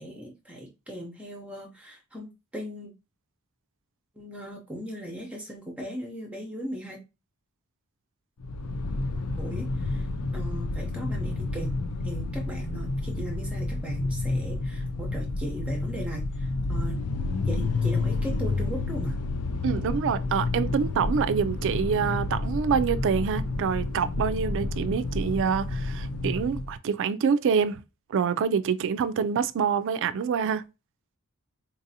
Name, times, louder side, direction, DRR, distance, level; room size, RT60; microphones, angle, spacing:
voice 1, 0.0-2.9 4.2-7.0 9.4-10.1 10.3-11.7 12.0-17.0 17.5-19.2, right 1 dB, 5° right, 0.6 m, -38 dB
sound 1, 8.4-26.8, left 3 dB, 80° left, 0.5 m, -30 dB
voice 2, 19.6-27.8 28.1-30.6, right 6 dB, 55° right, 0.3 m, -26 dB
3.9 x 2.6 x 2.7 m
head